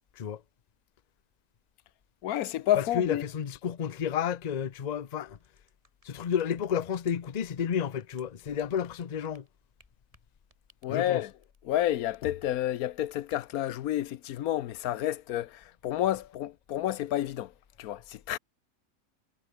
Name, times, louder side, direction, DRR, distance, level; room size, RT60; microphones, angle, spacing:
voice 1, 2.2-3.2 10.8-11.3 11.6-17.5 17.8-18.4, left 13 dB, 85° left, 1.2 m, -30 dB
voice 2, 2.7-5.4 6.0-9.5 10.9-11.2, left 8 dB, 40° left, 0.7 m, -31 dB
sound 1, 5.1-12.8 13.0-14.1, right 1 dB, 25° right, 7.9 m, -64 dB
omnidirectional pair, 1.5 m